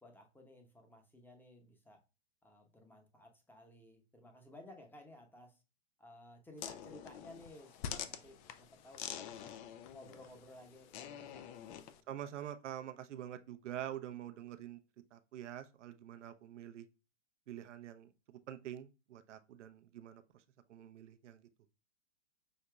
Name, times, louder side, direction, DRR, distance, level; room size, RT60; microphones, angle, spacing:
voice 1, 0.0-2.0 2.4-5.6 6.0-9.6 9.9-12.1, left 1 dB, 5° left, 1.0 m, -57 dB
sound 1, 6.6-12.0, left 9 dB, 40° left, 0.5 m, -46 dB
voice 2, 12.1-14.8 15.1-16.9 17.5-20.4 20.7-21.5, right 11 dB, 75° right, 0.8 m, -46 dB
6.4 x 2.8 x 2.3 m
hypercardioid pair, 115°, 36 cm